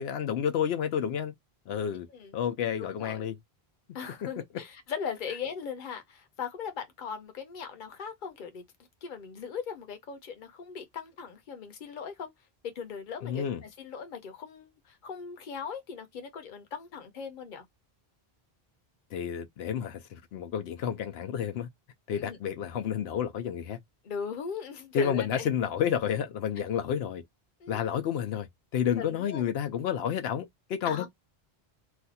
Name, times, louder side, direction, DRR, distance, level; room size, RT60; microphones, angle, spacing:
voice 1, 0.0-1.3 1.7-2.1 2.3-3.4 13.2-13.6 19.1-21.7 22.1-23.8 24.9-27.2 27.7-31.1, left 8 dB, 85° left, 0.8 m, -30 dB
voice 2, 1.9-2.4 2.8-3.3 3.9-8.6 9.0-12.3 12.6-17.6 22.1-22.4 24.0-25.5 27.6-27.8 29.0-29.5 30.8-31.1, left 6 dB, 55° left, 0.9 m, -39 dB
2.5 x 2.3 x 4.0 m
omnidirectional pair, 1.0 m